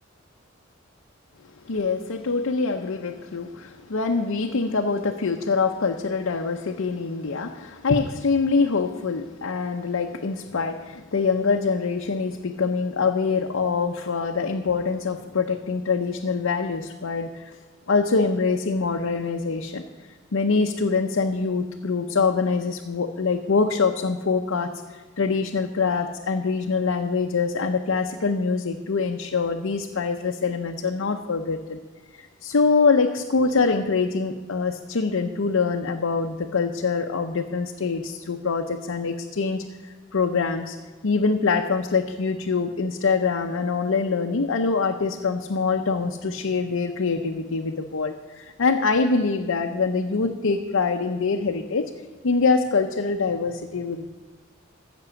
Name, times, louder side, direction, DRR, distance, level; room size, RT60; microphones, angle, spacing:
voice 1, 1.6-17.6 17.9-19.8 20.3-31.8 32.1-40.8 41.0-51.9 52.2-54.1, left 4 dB, 90° left, 4 dB, 0.7 m, -24 dB
15.0 x 6.1 x 7.0 m, 1.4 s
head